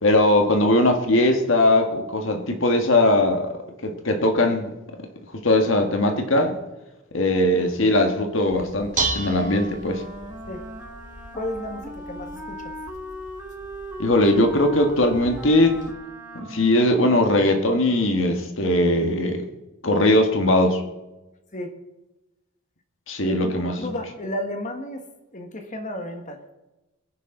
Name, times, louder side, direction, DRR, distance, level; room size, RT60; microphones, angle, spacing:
voice 1, 0.0-4.7 5.3-6.6 7.1-10.0 14.0-15.9 16.3-19.4 19.8-20.8 23.1-23.9, left 1 dB, 65° left, 4 dB, 1.7 m, -20 dB
Dishes pots and pans, 8.5-15.9, right 3 dB, 40° right, 1.8 m, -35 dB
Wind instrument woodwind instrument, 9.8-18.1, equal, 10° right, 1.9 m, -39 dB
voice 2, 11.3-12.7 21.5-21.7 23.2-25.0 25.3-26.4, left 1 dB, 40° left, 5 dB, 1.7 m, -33 dB
22.0 x 10.5 x 3.9 m, 1.0 s
head